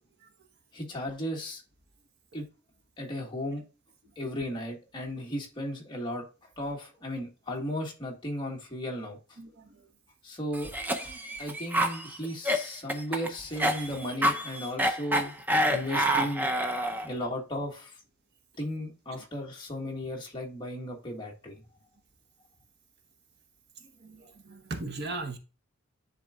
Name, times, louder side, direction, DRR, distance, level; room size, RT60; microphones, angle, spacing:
voice 1, 0.7-1.6 2.3-2.4 3.0-3.6 4.1-6.2 6.6-9.2 10.2-10.7 11.0-15.4 15.7-16.5 17.0-18.0 18.6-21.6, equal, 20° left, 1.7 m, -35 dB
Cough, 10.5-17.1, equal, 10° right, 0.6 m, -28 dB
voice 2, 24.0-25.4, right 3 dB, 50° right, 1.0 m, -37 dB
10.0 x 4.0 x 2.4 m
head